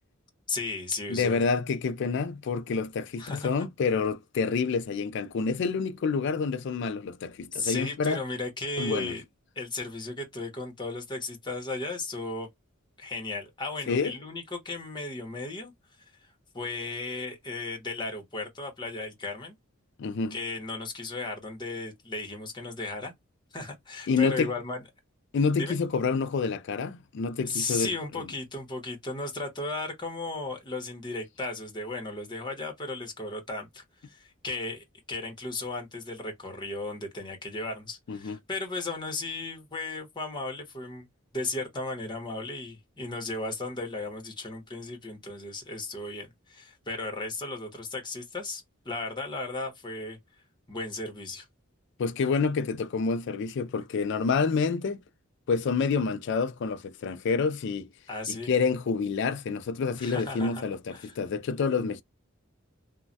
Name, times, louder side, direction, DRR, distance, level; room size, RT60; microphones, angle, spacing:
voice 1, 0.5-1.5 3.2-3.7 7.5-9.2 9.6-12.5 13.0-15.7 16.5-19.6 20.3-23.1 23.5-24.8 25.5-25.8 27.5-41.1 41.3-50.2 50.7-51.4 58.1-58.5 60.0-60.6 60.9-61.2, left 2 dB, 20° left, 0.9 m, -35 dB
voice 2, 1.1-8.2 8.8-9.1 13.9-14.1 20.0-20.4 24.1-24.5 25.3-27.9 28.2-28.3 38.1-38.4 52.0-55.0 55.5-57.9 58.3-62.0, left 5 dB, 60° left, 0.3 m, -28 dB
3.1 x 2.2 x 2.6 m
head